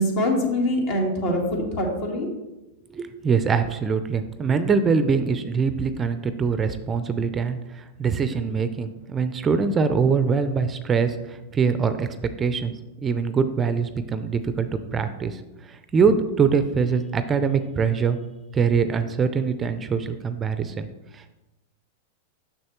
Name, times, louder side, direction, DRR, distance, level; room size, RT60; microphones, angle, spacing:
voice 1, 0.0-2.3, left 1 dB, 55° left, 1 dB, 1.7 m, -24 dB
voice 2, 2.9-12.1 12.4-12.7 13.0-15.4 15.7-18.2 18.5-20.9 21.1-21.3, right 5 dB, 25° right, 10 dB, 0.4 m, -23 dB
6.3 x 6.1 x 3.0 m, 1.0 s
hypercardioid pair, 115°, 0 cm